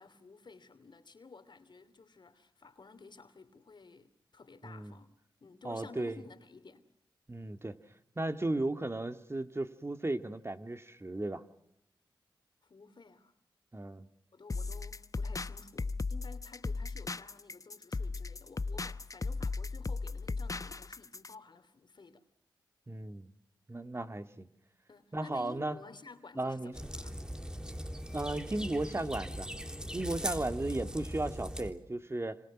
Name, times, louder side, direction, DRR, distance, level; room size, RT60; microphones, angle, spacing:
voice 1, 0.0-5.1 5.4-6.9 12.6-13.3 14.3-22.2 24.9-27.2 30.2-30.4, left 4 dB, 60° left, 2.9 m, -53 dB
voice 2, 4.6-4.9 5.6-6.2 7.3-7.8 8.2-11.4 13.7-14.1 22.9-23.3 23.7-24.5 25.1-25.8 26.4-26.7 28.1-29.5 29.9-32.4, right 2 dB, 30° right, 2.0 m, -35 dB
sound 1, 14.5-21.3, left 3 dB, 40° left, 0.9 m, -37 dB
sound 2, 26.7-31.7, equal, 10° right, 3.4 m, -40 dB
28.5 x 26.0 x 6.1 m
cardioid pair, 45°, 9 cm